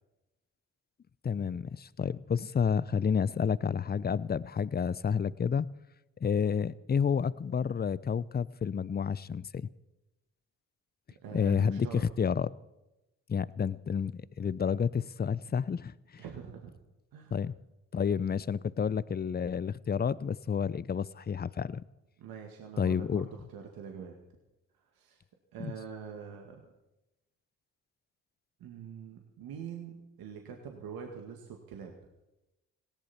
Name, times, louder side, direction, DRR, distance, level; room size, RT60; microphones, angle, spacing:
voice 1, 1.2-5.7 6.2-9.7 11.3-12.5 13.3-16.2 17.3-17.5 17.9-21.8 22.8-23.3 25.6-25.7, left 7 dB, 25° left, 0.7 m, -30 dB
voice 2, 11.1-12.1 16.2-16.7 17.1-17.4 22.2-24.2 24.9-25.2 25.5-26.7 28.6-31.9, right 7 dB, 65° right, 2.1 m, -44 dB
19.0 x 17.0 x 4.4 m
hypercardioid pair, 50°, 38 cm